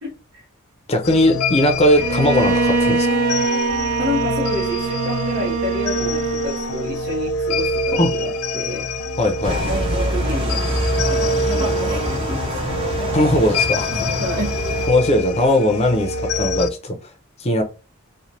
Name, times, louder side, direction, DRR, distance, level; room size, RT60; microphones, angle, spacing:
voice 1, 0.0-0.4 4.0-8.9 9.9-10.7 11.0-12.7 14.2-14.6, left 1 dB, 65° right, 0.9 m, -29 dB
voice 2, 0.9-3.2 8.0-8.1 9.2-9.8 13.1-14.1 14.9-17.0 17.4-17.6, left 1 dB, 30° left, 0.5 m, -19 dB
sound 1, 1.0-16.7, left 2 dB, 85° left, 0.4 m, -25 dB
Bowed string instrument, 2.0-7.0, right 4 dB, 80° right, 0.5 m, -23 dB
sound 2, 9.4-14.9, right 1 dB, 25° right, 0.6 m, -24 dB
3.1 x 2.1 x 2.6 m
head